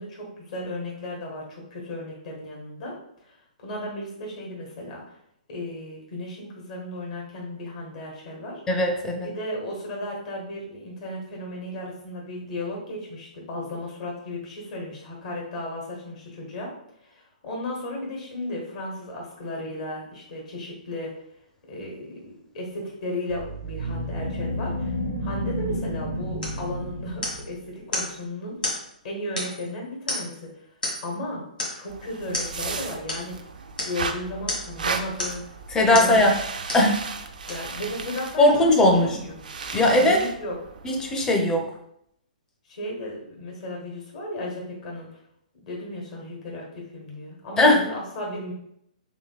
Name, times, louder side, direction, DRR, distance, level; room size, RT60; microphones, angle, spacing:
voice 1, 0.0-2.9 3.3-5.1 5.5-8.6 9.2-16.7 17.0-21.1 21.7-24.9 25.2-28.6 29.0-30.5 31.0-31.4 31.7-33.4 33.8-35.4 35.9-36.2 37.5-39.5 40.0-40.6 42.7-45.1 45.6-48.5, left 1 dB, 55° left, -2 dB, 1.2 m, -35 dB
voice 2, 8.7-9.3 35.7-36.4 36.7-37.0 38.4-39.2 39.7-40.2 40.8-41.6 47.6-47.8, left 1 dB, 15° left, 2 dB, 0.5 m, -19 dB
sound 1, 23.3-27.7, equal, 90° right, 0.9 m, -31 dB
sound 2, 26.4-26.6 27.2-27.5 27.9-28.1 28.6-28.8 29.4-29.7 30.1-30.4 30.8-31.1 31.6-31.8 32.3-32.5 33.1-33.3 33.8-34.0 34.5-34.8 35.2-35.5 35.9-36.2 36.7-36.9 37.5-37.6, left 1 dB, 85° left, 1.4 m, -30 dB
sound 3, 31.9-41.3, right 4 dB, 70° right, 0.4 m, -35 dB
3.9 x 3.1 x 2.3 m, 0.73 s
figure-of-eight pair, 125°, 5 cm